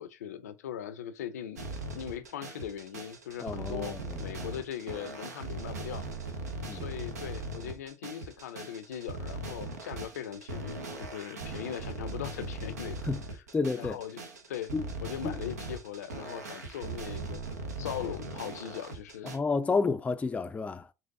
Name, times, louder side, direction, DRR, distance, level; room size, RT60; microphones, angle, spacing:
voice 1, 0.0-1.7 1.9-6.0 6.7-13.4 13.8-14.2 14.5-14.7 15.0-17.5 17.8-19.3, left 9 dB, 80° left, 0.4 m, -40 dB
sound 1, 1.6-19.4, right 2 dB, 85° right, 0.7 m, -39 dB
voice 2, 3.4-4.2 6.7-6.9 13.1-13.2 13.5-14.0 14.7-14.8 15.2-15.3 19.2-20.9, left 4 dB, 15° left, 0.3 m, -30 dB
4.0 x 3.0 x 2.5 m
hypercardioid pair, 65°, 8 cm